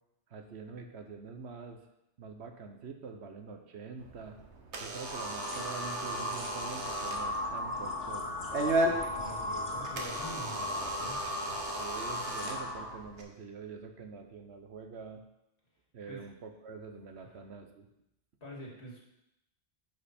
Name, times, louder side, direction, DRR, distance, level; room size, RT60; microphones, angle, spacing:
voice 1, 0.3-1.8 2.2-4.4 4.8-8.4 11.8-15.2 15.9-17.9, right 5 dB, 75° right, 6 dB, 1.2 m, -45 dB
Door / Alarm, 4.0-13.2, right 2 dB, 90° right, 1.4 m, -37 dB
sound 1, 5.0-13.0, left 1 dB, 45° left, 1.8 m, -36 dB
voice 2, 8.9-11.3 16.1-16.2 18.4-19.1, equal, 75° left, -3 dB, 2.5 m, -45 dB
10.5 x 5.3 x 4.3 m, 0.86 s
omnidirectional pair, 1.1 m